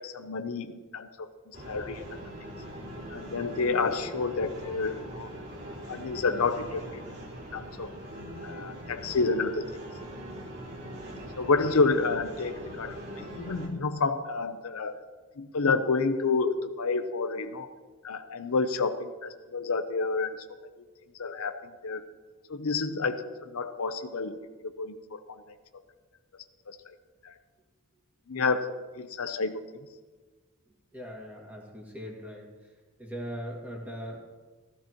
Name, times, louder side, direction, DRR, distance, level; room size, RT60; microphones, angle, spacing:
voice 1, 0.0-2.0 3.1-5.3 5.9-7.0 7.5-7.9 8.4-9.7 11.4-15.0 15.4-17.7 18.0-20.4 21.2-22.0 22.5-24.4 24.6-25.4 26.7-26.9 27.2-27.3 28.3-29.8, left 4 dB, 75° left, 9 dB, 0.7 m, -29 dB
sound 1, 1.5-13.7, equal, 45° right, 2.7 m, -42 dB
voice 2, 30.9-32.5 33.0-34.2, equal, 5° right, -2 dB, 2.0 m, -39 dB
15.0 x 14.0 x 3.0 m, 1.3 s
head